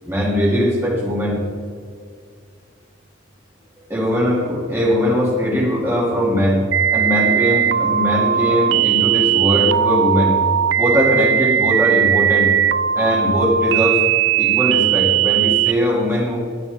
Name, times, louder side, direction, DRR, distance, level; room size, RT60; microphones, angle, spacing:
voice 1, 0.0-1.4 3.9-10.4 10.8-12.5 12.9-14.0 14.4-16.4, equal, 15° right, -5 dB, 2.7 m, -20 dB
sound 1, 6.7-15.7, right 10 dB, 75° right, 0.4 m, -18 dB
13.0 x 9.6 x 3.6 m, 2.2 s
head